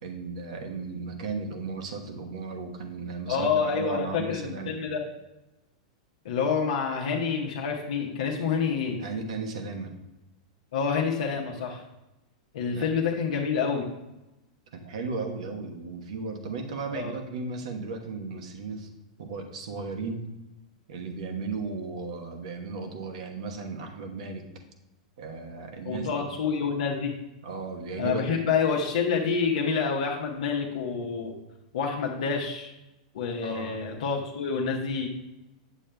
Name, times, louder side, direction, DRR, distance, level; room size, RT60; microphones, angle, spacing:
voice 1, 0.0-4.8 9.0-9.9 12.7-12.9 14.7-18.9 19.2-20.2 20.9-24.4 25.2-26.1 27.4-28.4 33.4-33.8, right 4 dB, 70° right, 4 dB, 1.1 m, -35 dB
voice 2, 3.3-5.0 6.2-9.0 10.7-11.8 12.5-13.9 16.9-17.1 25.8-27.1 28.0-31.4 31.7-32.7 33.1-35.1, left 5 dB, 75° left, -2 dB, 0.9 m, -28 dB
8.5 x 7.1 x 2.3 m, 0.98 s
hypercardioid pair, 110°, 3 cm